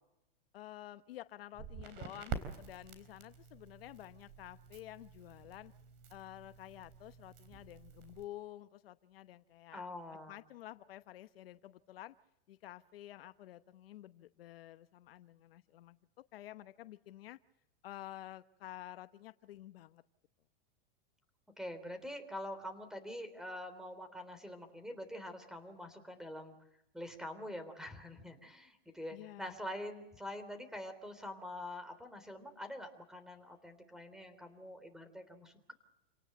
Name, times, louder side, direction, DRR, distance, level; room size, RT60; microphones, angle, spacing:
voice 1, 0.5-5.7 6.1-9.8 10.3-12.1 12.5-17.4 17.8-20.0 29.1-29.6, left 14 dB, 75° left, 12 dB, 1.0 m, -51 dB
Crackle, 1.5-8.2, right 6 dB, 40° right, 4.0 m, -48 dB
voice 2, 9.7-10.4 21.6-26.5 26.9-35.7, left 1 dB, ahead, 10 dB, 3.5 m, -45 dB
28.5 x 18.5 x 7.7 m, 0.85 s
supercardioid pair, 145°, 29 cm